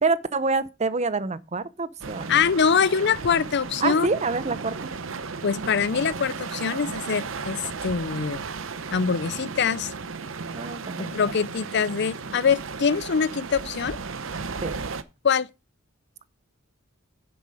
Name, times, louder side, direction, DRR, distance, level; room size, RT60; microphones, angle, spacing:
voice 1, 0.0-2.4 3.8-4.9 10.5-11.1 14.6-14.7, right 4 dB, 35° right, 0.7 m, -26 dB
sound 1, 2.0-15.0, right 4 dB, 75° right, 0.8 m, -35 dB
voice 2, 2.3-4.1 5.4-8.4 8.9-9.9 11.0-14.0 15.2-15.5, left 6 dB, 60° left, 0.6 m, -24 dB
9.7 x 7.7 x 4.9 m
head